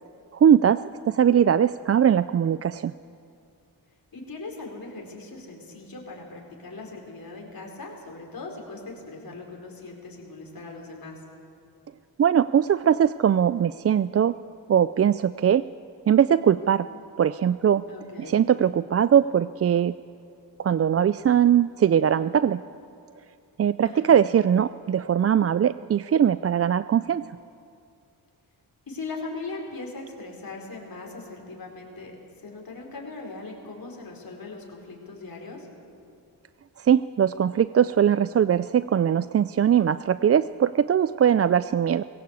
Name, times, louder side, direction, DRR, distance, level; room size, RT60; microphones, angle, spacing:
voice 1, 0.3-2.9 12.2-14.4 14.7-15.6 16.1-16.9 17.2-17.8 18.2-19.9 20.6-22.6 23.6-27.2 36.8-42.0, right 9 dB, 35° right, 15 dB, 0.4 m, -21 dB
voice 2, 4.1-11.2 16.9-17.0 17.9-18.3 23.8-24.2 28.9-35.7, left 3 dB, 55° left, 0 dB, 4.5 m, -39 dB
20.5 x 17.0 x 8.1 m, 2.4 s
cardioid pair, 65°, 41 cm